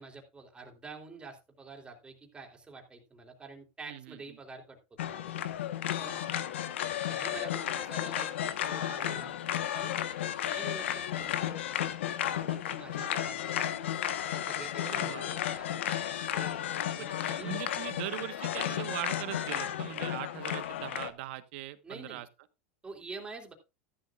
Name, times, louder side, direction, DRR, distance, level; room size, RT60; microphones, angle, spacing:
voice 1, 0.0-4.8 5.1-5.4 6.0-6.2 7.1-9.3 9.7-9.9 10.5-11.7 12.3-13.7 14.3-15.7 16.3-16.6 16.9-17.7 21.8-22.2 22.8-23.5, right 4 dB, 15° right, 3.4 m, -47 dB
voice 2, 3.9-4.2 14.8-15.5 17.0-22.3, right 16 dB, 70° right, 1.3 m, -40 dB
sound 1, 5.0-21.1, left 11 dB, 90° left, 1.2 m, -33 dB
14.0 x 11.5 x 2.5 m
supercardioid pair, 120°, 6 cm